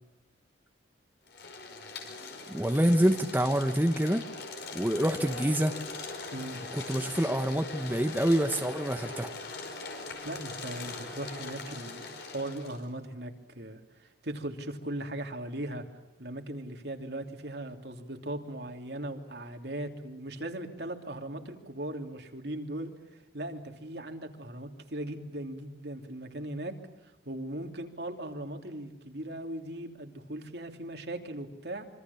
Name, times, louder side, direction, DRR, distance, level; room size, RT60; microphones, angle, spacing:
sound 1, 1.3-12.8, left 3 dB, 60° left, 5.3 m, -41 dB
voice 1, 2.5-4.2 4.7-5.7 6.7-9.3, equal, 10° right, 6 dB, 1.1 m, -26 dB
voice 2, 10.2-15.8 16.2-22.9 23.3-26.8 27.2-31.9, right 1 dB, 60° right, 5 dB, 3.0 m, -38 dB
26.5 x 25.0 x 7.1 m, 0.97 s
head